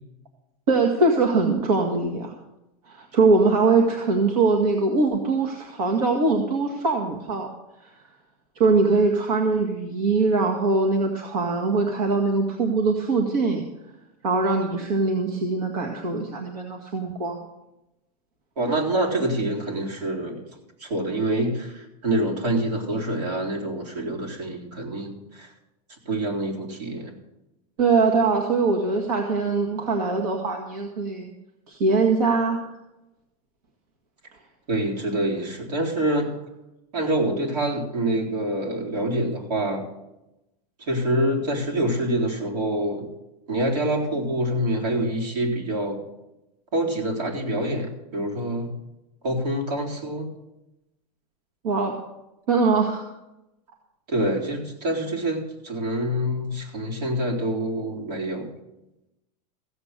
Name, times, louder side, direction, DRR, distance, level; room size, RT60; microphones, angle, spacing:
voice 1, 0.7-2.3 2.9-7.5 7.8-7.9 8.6-13.6 14.2-17.4 27.8-31.3 31.7-32.7 51.6-52.0 52.5-53.1, right 3 dB, 70° right, 2 dB, 1.9 m, -22 dB
voice 2, 18.6-20.5 20.8-25.5 26.1-27.1 34.7-36.3 36.9-39.9 40.9-43.1 43.5-46.0 46.7-48.7 49.2-50.3 54.1-58.5, right 1 dB, 85° right, -1 dB, 3.9 m, -26 dB
15.5 x 8.2 x 6.7 m, 0.94 s
supercardioid pair, 170°, 20 cm